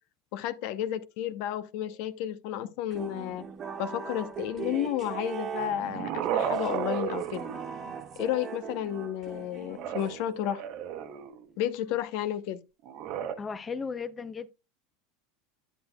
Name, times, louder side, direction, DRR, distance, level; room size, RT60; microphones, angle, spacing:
voice 1, 0.3-3.4 3.8-7.4 8.2-10.6 11.6-12.6, left 11 dB, 65° left, 0.7 m, -32 dB
sound 1, 2.9-10.3, right 6 dB, 35° right, 1.3 m, -40 dB
sound 2, 5.6-8.2 9.7-11.5 12.9-13.3, right 9 dB, 55° right, 1.0 m, -34 dB
voice 2, 13.4-14.5, left 5 dB, 20° left, 0.6 m, -35 dB
10.0 x 8.0 x 2.2 m
supercardioid pair, 110°, 0 cm